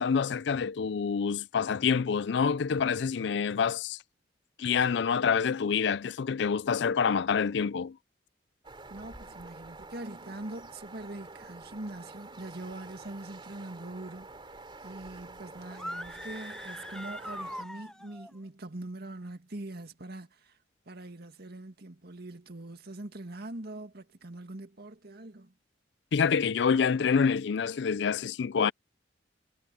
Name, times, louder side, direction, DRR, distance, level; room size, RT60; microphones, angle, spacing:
voice 1, 0.0-4.0 4.6-8.0 26.1-28.7, left 6 dB, 65° left, 0.4 m, -27 dB
sound 1, 8.6-17.6, right 3 dB, 30° right, 3.2 m, -48 dB
voice 2, 8.9-20.6 20.9-25.5, right 2 dB, 60° right, 2.1 m, -43 dB
sound 2, 15.7-18.3, left 1 dB, 5° left, 0.8 m, -41 dB
head